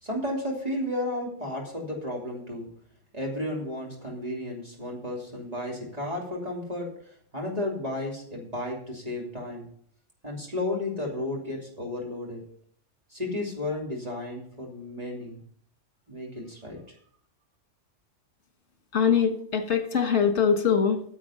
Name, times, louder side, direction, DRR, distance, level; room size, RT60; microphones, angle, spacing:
voice 1, 0.0-2.7 3.1-9.7 10.2-12.4 13.1-15.4 16.1-16.8, left 1 dB, 30° right, -2 dB, 2.9 m, -33 dB
voice 2, 18.9-21.0, left 7 dB, 65° left, 6 dB, 1.7 m, -23 dB
9.7 x 7.6 x 5.6 m, 0.63 s
omnidirectional pair, 1.3 m